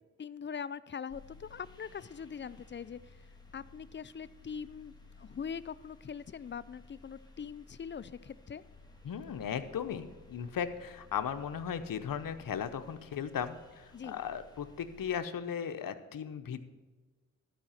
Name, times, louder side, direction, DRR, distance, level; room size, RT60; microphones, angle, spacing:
voice 1, 0.2-3.0 3.5-8.6 13.9-14.2, left 7 dB, 35° left, 17 dB, 0.4 m, -42 dB
sound 1, 1.1-15.2, left 3 dB, 10° left, 1.7 m, -57 dB
voice 2, 9.0-16.6, left 8 dB, 70° left, 10 dB, 0.8 m, -37 dB
12.0 x 5.0 x 7.2 m, 1.3 s
cardioid pair, 50°, 35 cm